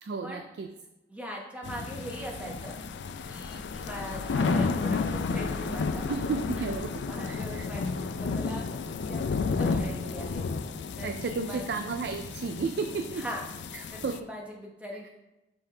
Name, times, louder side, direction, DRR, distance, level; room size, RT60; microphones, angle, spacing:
voice 1, 0.0-0.7 6.1-7.7 11.0-13.3 13.7-14.3 15.0-15.1, right 4 dB, 70° right, 8 dB, 0.3 m, -33 dB
voice 2, 1.1-2.8 3.3-6.2 6.6-6.7 7.1-8.8 9.1-10.4 11.0-11.9 13.1-13.4 13.9-15.1, equal, 5° right, -2 dB, 0.9 m, -41 dB
sound 1, 1.6-14.2, left 4 dB, 90° left, 0.4 m, -32 dB
6.0 x 5.7 x 3.3 m, 0.98 s
head